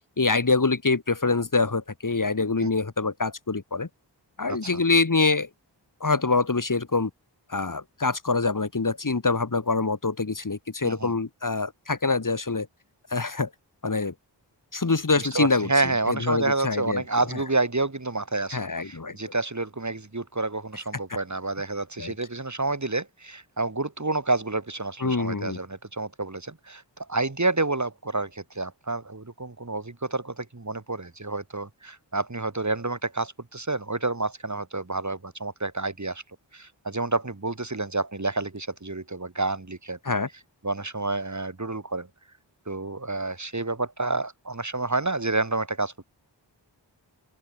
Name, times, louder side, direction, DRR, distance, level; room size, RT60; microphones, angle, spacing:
voice 1, 0.2-3.9 4.4-5.5 6.0-7.1 7.5-12.7 13.1-13.5 13.8-14.1 14.7-15.7 16.1-17.0 18.5-19.2 22.0-22.1 25.0-25.6 40.0-40.3, left 3 dB, 45° left, 2.4 m, -25 dB
voice 2, 15.2-36.2 36.5-40.0 40.6-42.1 42.7-46.0, right 2 dB, 40° right, 4.3 m, -29 dB
open air
wide cardioid pair, 70°, 43 cm